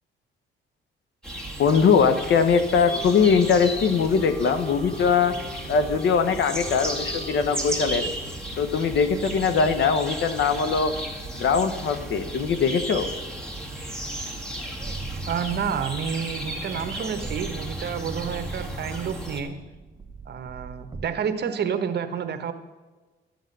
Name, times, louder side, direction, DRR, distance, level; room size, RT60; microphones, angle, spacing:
sound 1, 1.2-19.4, right 1 dB, 5° left, 2.2 m, -34 dB
voice 1, 1.6-5.3 5.7-8.1 8.6-10.9 11.3-13.1, left 6 dB, 65° left, 11 dB, 1.0 m, -21 dB
Wind instrument woodwind instrument, 2.8-8.4, left 3 dB, 30° left, 1.2 m, -43 dB
sound 2, 14.8-21.1, right 4 dB, 20° right, 0.9 m, -39 dB
voice 2, 15.3-19.5 20.2-22.5, right 7 dB, 55° right, 9 dB, 1.1 m, -29 dB
12.5 x 7.9 x 6.7 m, 1.2 s
cardioid pair, 90°, 20 cm